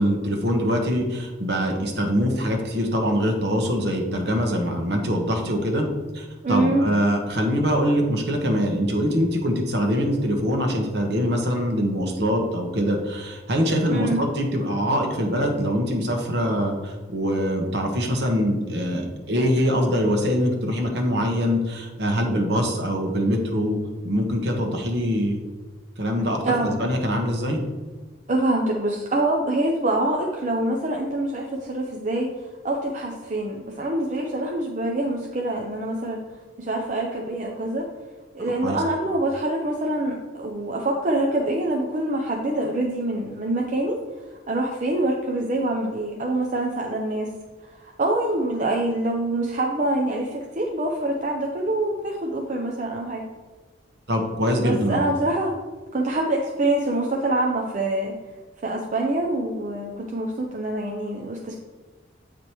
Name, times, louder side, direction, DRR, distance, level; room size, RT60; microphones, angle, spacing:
voice 1, 0.0-5.9 6.1-23.8 24.0-25.4 26.0-27.6 38.6-38.8 54.1-55.0, equal, 60° right, 2 dB, 1.2 m, -23 dB
voice 2, 6.4-6.9 13.9-14.2 26.4-26.7 28.3-36.2 36.6-37.9 38.3-47.3 47.6-53.2 54.6-55.5 55.9-58.1 58.6-61.5, right 1 dB, 40° right, 0 dB, 0.6 m, -25 dB
8.2 x 5.0 x 3.0 m, 1.3 s
head